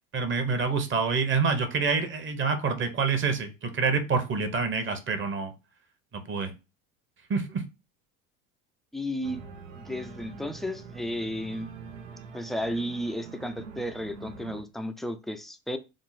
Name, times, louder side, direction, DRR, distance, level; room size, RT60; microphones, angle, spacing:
voice 1, 0.1-5.5 6.3-6.5 7.3-7.6, right 5 dB, 30° right, 1.0 m, -27 dB
voice 2, 8.9-9.4 9.8-11.7 12.3-15.8, equal, ahead, 0.4 m, -33 dB
Organ, 9.2-14.6, right 5 dB, 90° right, 0.9 m, -44 dB
3.7 x 2.0 x 4.0 m
hypercardioid pair, 90°, 37 cm